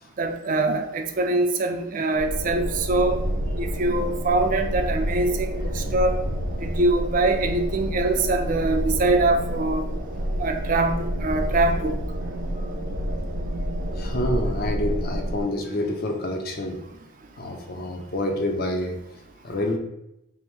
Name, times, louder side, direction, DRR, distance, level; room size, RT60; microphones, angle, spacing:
voice 1, 0.2-3.2 3.6-6.2 6.6-9.9 10.4-12.0, right 2 dB, 40° right, 5 dB, 0.4 m, -23 dB
sound 1, 2.1-15.4, equal, 75° right, 0.8 m, -28 dB
voice 2, 13.9-16.8 17.4-19.0 19.4-19.8, left 1 dB, 45° left, 3 dB, 0.6 m, -28 dB
3.4 x 2.6 x 4.4 m, 0.86 s
head